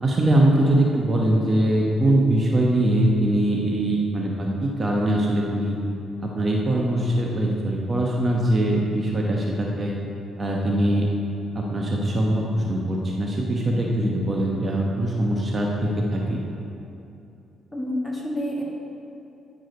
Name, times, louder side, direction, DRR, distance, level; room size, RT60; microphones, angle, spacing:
voice 1, 0.0-5.8 6.2-9.9 10.4-11.1 11.5-16.4, right 1 dB, 30° right, -2 dB, 0.9 m, -22 dB
voice 2, 17.7-18.6, equal, 5° left, -4 dB, 1.7 m, -28 dB
9.3 x 4.8 x 5.1 m, 2.7 s
cardioid pair, 90°, 0 cm